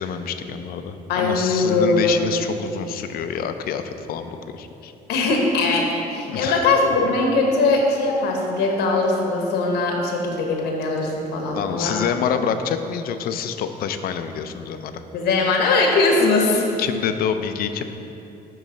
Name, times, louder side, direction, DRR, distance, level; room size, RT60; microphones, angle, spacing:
voice 1, 0.0-4.9 6.3-6.7 11.5-14.9 16.8-17.8, left 7 dB, 60° left, 9 dB, 0.4 m, -27 dB
voice 2, 1.1-2.2 5.1-12.0 15.1-16.7, left 3 dB, 80° left, 1 dB, 1.0 m, -20 dB
9.1 x 3.1 x 5.0 m, 2.9 s
cardioid pair, 110°, 17 cm